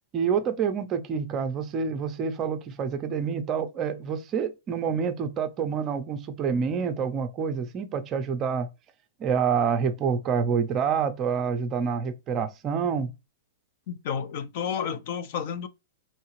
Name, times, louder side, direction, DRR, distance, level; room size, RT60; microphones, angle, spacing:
voice 1, 0.1-8.7 9.2-13.1, right 6 dB, 20° right, 0.5 m, -27 dB
voice 2, 13.9-15.7, left 7 dB, 45° left, 0.4 m, -31 dB
4.7 x 3.1 x 3.0 m
supercardioid pair, 165°, 0 cm